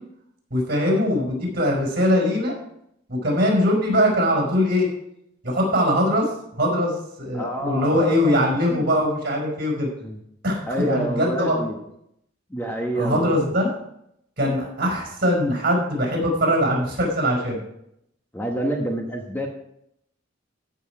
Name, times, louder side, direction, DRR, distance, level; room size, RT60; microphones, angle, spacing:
voice 1, 0.5-2.6 3.1-4.9 5.4-6.3 6.6-6.9 7.2-9.9 10.4-11.6 13.0-13.8 14.4-17.6, equal, 50° right, 0 dB, 5.0 m, -21 dB
voice 2, 7.3-8.9 10.0-10.2 10.7-11.8 12.5-13.5 18.3-19.5, right 1 dB, 10° left, 1 dB, 1.2 m, -28 dB
14.5 x 6.5 x 4.8 m, 0.76 s
head